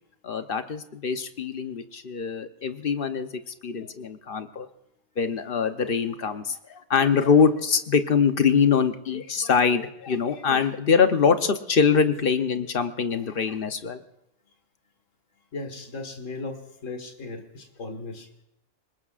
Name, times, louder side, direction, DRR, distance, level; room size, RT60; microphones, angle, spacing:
voice 1, 0.2-3.3 3.6-4.7 5.2-14.0, left 6 dB, 45° left, 8 dB, 1.0 m, -23 dB
voice 2, 15.5-18.4, left 3 dB, 70° left, 4 dB, 2.1 m, -37 dB
28.5 x 20.0 x 2.5 m, 0.82 s
omnidirectional pair, 1.4 m